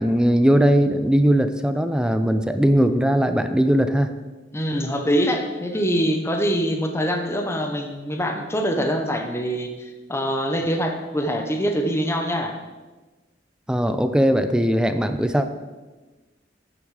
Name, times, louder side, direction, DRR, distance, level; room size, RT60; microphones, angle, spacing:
voice 1, 0.0-4.1 13.7-15.5, equal, 5° right, 9 dB, 0.4 m, -19 dB
voice 2, 4.5-12.5, equal, 15° left, 4 dB, 0.8 m, -24 dB
8.8 x 7.1 x 4.8 m, 1.2 s
head